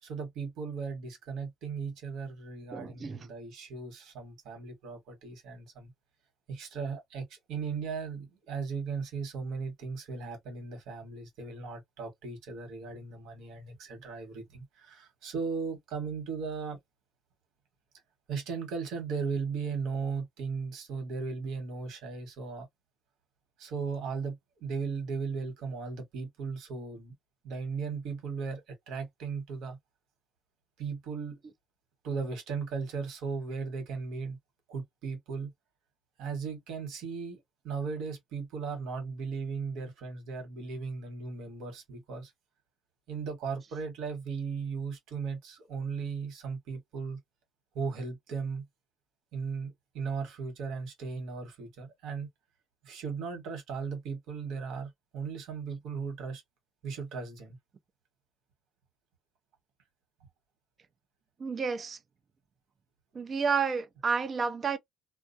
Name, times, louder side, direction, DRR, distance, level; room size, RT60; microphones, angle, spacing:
voice 1, 0.0-5.9 6.5-16.8 18.3-22.7 23.6-27.1 27.4-29.8 30.8-31.4 32.0-34.4 34.7-35.5 36.2-37.4 37.6-42.3 43.1-47.2 47.7-48.6 49.3-52.3 52.8-56.4 56.8-57.6, right 5 dB, 75° right, 1.3 m, -37 dB
voice 2, 2.7-3.2 61.4-62.0 63.1-64.8, right 5 dB, 30° right, 0.4 m, -30 dB
2.4 x 2.3 x 2.6 m
cardioid pair, 175°, 0 cm